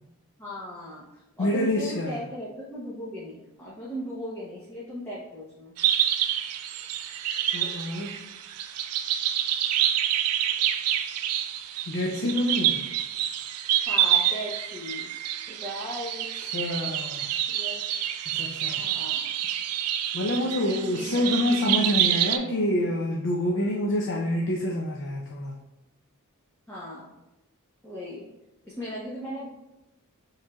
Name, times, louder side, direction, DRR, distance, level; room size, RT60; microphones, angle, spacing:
voice 1, 0.4-5.7 13.9-15.1 15.5-16.3 17.5-17.8 18.8-19.3 20.6-21.3 26.7-27.1 27.8-28.3 28.6-29.5, equal, 10° left, -8 dB, 0.8 m, -37 dB
voice 2, 1.4-2.2 7.5-8.1 11.9-12.8 16.4-17.3 18.3-18.8 20.1-25.6, left 1 dB, 55° left, 0 dB, 0.5 m, -27 dB
sound 1, 5.8-22.4, right 11 dB, 85° right, 0.4 m, -27 dB
7.1 x 3.2 x 2.3 m, 0.95 s
head